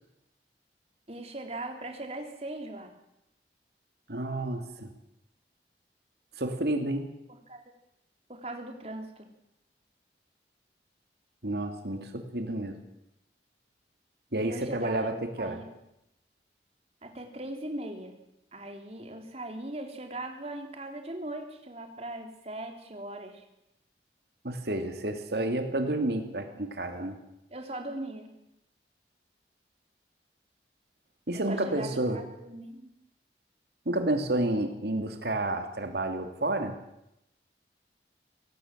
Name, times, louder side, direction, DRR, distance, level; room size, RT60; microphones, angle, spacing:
voice 1, 1.1-2.9 7.5-7.6 8.3-9.3 14.4-15.6 17.0-18.1 18.5-23.4 27.5-28.3 31.3-32.9, right 1 dB, 35° right, 4 dB, 3.4 m, -39 dB
voice 2, 4.1-4.9 6.4-7.2 11.4-12.8 14.3-15.6 24.4-27.2 31.3-32.2 33.9-36.8, right 1 dB, 70° right, 6 dB, 2.6 m, -30 dB
23.5 x 18.0 x 7.5 m, 0.85 s
head